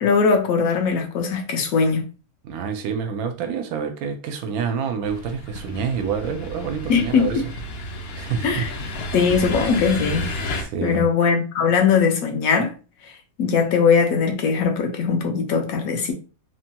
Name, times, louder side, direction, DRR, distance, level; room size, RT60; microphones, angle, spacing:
voice 1, 0.0-2.0 6.9-7.4 8.4-8.7 9.1-10.2 10.8-12.7 13.4-16.1, left 5 dB, 80° left, 1.1 m, -20 dB
voice 2, 2.4-7.4 8.2-8.6 9.2-9.3 10.6-11.1, right 6 dB, 85° right, 1.1 m, -27 dB
sound 1, 5.0-10.6, left 1 dB, 65° left, 0.6 m, -31 dB
3.1 x 2.2 x 2.8 m
omnidirectional pair, 1.5 m